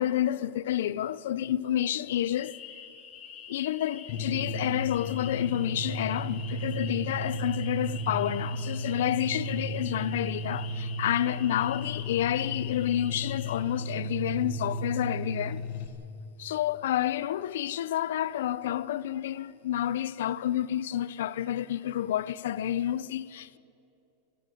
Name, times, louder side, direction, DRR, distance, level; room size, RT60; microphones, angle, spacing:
voice 1, 0.0-2.5 3.5-15.6 16.4-23.6, left 11 dB, 75° left, 0.6 m, -29 dB
sound 1, 2.1-13.6, left 8 dB, 25° left, 2.2 m, -47 dB
sound 2, 4.1-15.9, equal, 40° left, 1.6 m, -34 dB
28.0 x 13.0 x 9.3 m
supercardioid pair, 175°, 0 cm